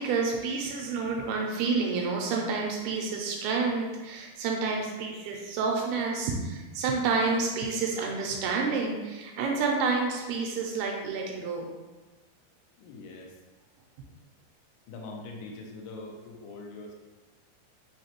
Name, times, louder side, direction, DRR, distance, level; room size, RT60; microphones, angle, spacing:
voice 1, 0.0-11.7, right 4 dB, 85° right, 0 dB, 2.5 m, -29 dB
voice 2, 12.8-13.4 14.9-16.9, left 2 dB, 75° left, -1 dB, 2.2 m, -42 dB
5.8 x 3.1 x 2.9 m, 1.2 s
omnidirectional pair, 4.5 m